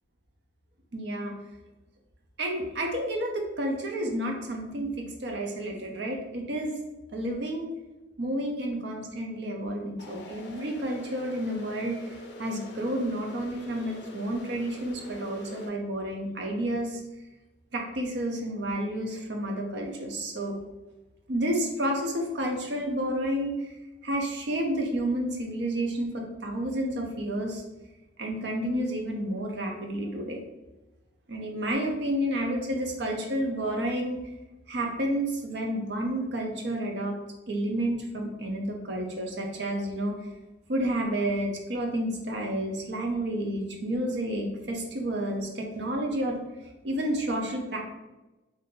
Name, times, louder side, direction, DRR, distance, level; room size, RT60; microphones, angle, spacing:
voice 1, 0.9-1.3 2.4-6.7 7.1-7.7 8.2-12.0 12.4-17.0 17.7-20.5 21.3-23.5 24.0-27.6 28.2-30.4 31.3-34.2 34.7-37.1 37.5-40.1 40.7-46.4 46.8-47.8, right 1 dB, 65° right, 1 dB, 0.6 m, -30 dB
sound 1, 10.0-15.7, left 1 dB, 65° left, 0.5 m, -45 dB
2.7 x 2.5 x 3.7 m, 1.0 s
head